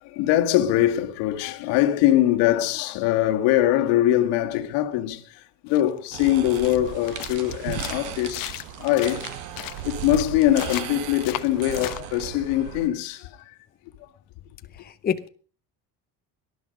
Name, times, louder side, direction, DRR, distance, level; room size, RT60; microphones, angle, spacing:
voice 1, 0.0-9.3 9.8-13.6, left 13 dB, 85° left, 1.8 m, -22 dB
sound 1, 5.7-12.0, left 16 dB, 55° left, 1.0 m, -37 dB
sound 2, 6.1-12.9, right 11 dB, 90° right, 1.8 m, -36 dB
sound 3, 6.8-11.1 11.4-11.6 12.5-12.8, right 7 dB, 45° right, 2.6 m, -43 dB
voice 2, 14.8-15.3, left 7 dB, 25° left, 0.8 m, -27 dB
18.5 x 11.0 x 5.2 m
cardioid pair, 140°, 41 cm